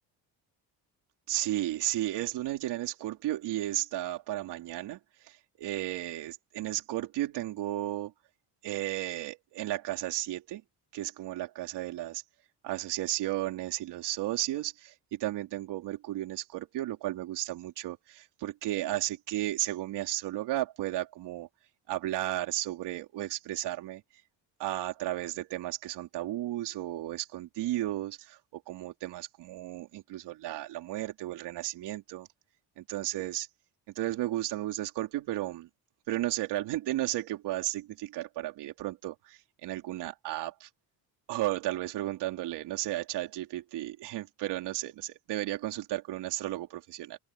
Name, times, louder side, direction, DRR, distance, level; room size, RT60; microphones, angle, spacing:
voice 1, 1.3-5.0 5.3-8.1 8.6-10.6 10.9-12.2 12.6-21.5 21.9-24.0 24.6-32.3 32.8-33.5 34.0-35.7 36.1-40.7 41.3-47.2, right 15 dB, 85° right, 3.7 m, -34 dB
open air
cardioid pair, 95°, 40 cm